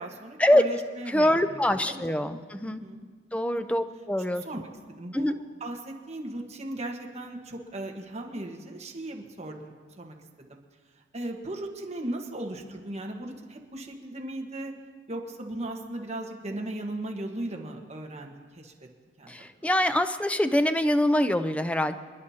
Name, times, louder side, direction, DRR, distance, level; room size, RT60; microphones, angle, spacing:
voice 1, 0.0-2.4 2.6-3.0 3.5-3.8 4.3-4.7 5.0-5.3 5.6-10.6 11.1-14.7 15.1-18.7 19.2-19.5, right 1 dB, 35° right, 2 dB, 1.4 m, -37 dB
voice 2, 1.1-2.8 3.3-4.4 5.1-5.3 19.3-22.0, left 1 dB, 5° left, 9 dB, 0.5 m, -24 dB
28.5 x 11.0 x 2.9 m, 1.5 s
head